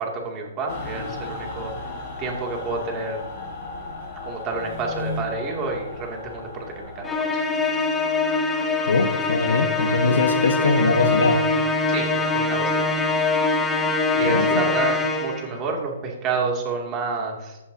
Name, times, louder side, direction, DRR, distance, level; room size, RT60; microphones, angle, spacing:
voice 1, 0.0-1.7 2.2-3.2 4.2-7.1 11.9-12.1 12.3-13.0 14.1-17.6, right 4 dB, 20° right, 0 dB, 2.6 m, -29 dB
Mechanical fan, 0.7-7.1, left 3 dB, 30° left, 4.9 m, -35 dB
Musical instrument, 7.0-15.5, left 3 dB, 10° left, 1.0 m, -23 dB
voice 2, 8.9-11.4 14.2-14.6, left 3 dB, 85° left, 4 dB, 1.3 m, -22 dB
15.5 x 11.0 x 2.8 m, 0.97 s
hypercardioid pair, 160°, 0 cm